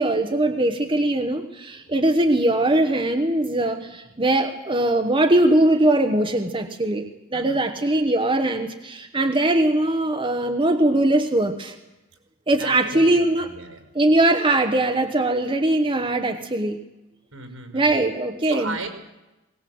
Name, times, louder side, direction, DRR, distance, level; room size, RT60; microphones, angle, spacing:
voice 1, 0.0-7.1 7.3-11.7 12.5-13.5 13.9-16.8 17.7-18.7, right 1 dB, 25° right, 6 dB, 1.1 m, -21 dB
voice 2, 12.5-13.8 17.3-18.0 18.4-18.9, right 3 dB, 75° right, 6 dB, 5.4 m, -36 dB
21.0 x 19.0 x 7.8 m, 0.99 s
head